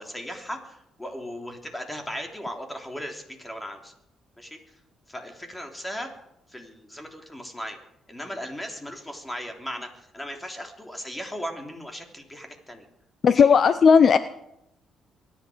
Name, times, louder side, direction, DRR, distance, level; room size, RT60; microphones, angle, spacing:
voice 1, 0.0-3.9 4.4-4.7 5.1-6.1 6.5-7.8 8.1-12.9 13.3-13.5, equal, 10° left, 3 dB, 3.3 m, -37 dB
voice 2, 13.2-14.2, left 6 dB, 50° left, 13 dB, 0.7 m, -15 dB
24.0 x 10.5 x 5.1 m, 0.80 s
cardioid pair, 90°, 0 cm